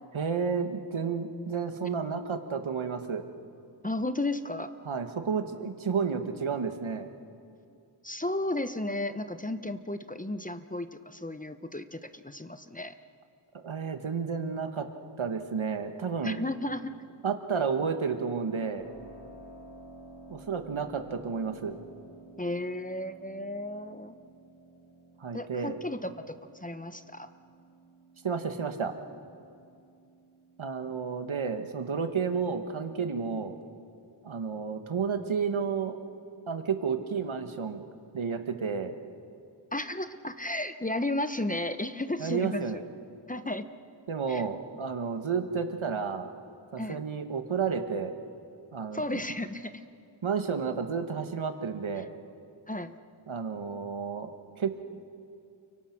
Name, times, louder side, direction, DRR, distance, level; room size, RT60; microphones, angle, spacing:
voice 1, 0.1-3.2 4.8-7.1 13.6-14.9 15.2-16.4 17.2-18.9 20.3-21.8 25.2-25.8 28.2-28.9 30.6-33.5 34.2-36.0 36.5-37.8 38.1-39.0 42.2-42.8 44.1-46.3 46.7-48.1 48.7-49.2 50.2-52.1 53.3-54.7, right 6 dB, 70° right, 7 dB, 1.6 m, -31 dB
voice 2, 3.8-4.7 8.0-12.9 16.2-16.9 22.4-24.1 25.3-26.1 26.6-27.3 39.7-42.6 43.3-43.6 44.3-44.4 46.8-47.0 48.9-49.7 52.7-52.9, left 1 dB, 15° left, 10 dB, 0.9 m, -33 dB
Keyboard (musical), 18.8-31.3, right 2 dB, 70° left, 7.6 m, -53 dB
30.0 x 24.0 x 6.0 m, 2.5 s
wide cardioid pair, 80°, 49 cm